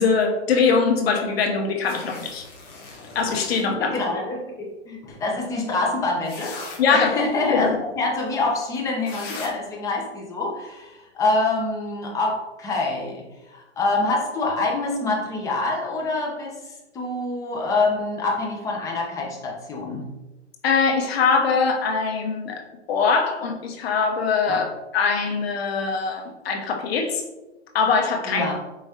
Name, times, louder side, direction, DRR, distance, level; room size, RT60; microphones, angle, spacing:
voice 1, 0.0-2.4 3.1-4.0 6.8-7.8 20.6-22.6 22.9-24.6 24.9-27.2 27.7-28.4, left 5 dB, 60° left, 3 dB, 0.9 m, -22 dB
sound 1, 1.8-3.6 5.7-5.8 6.3-6.8 8.8-8.9 9.0-9.5, left 3 dB, 25° left, 1.0 m, -38 dB
voice 2, 3.8-6.5 6.9-7.7 8.0-13.2 13.5-20.1 24.5-24.6 28.3-28.5, left 3 dB, 10° left, -2 dB, 0.6 m, -26 dB
4.8 x 3.1 x 2.8 m, 1.1 s
hypercardioid pair, 135°, 35 cm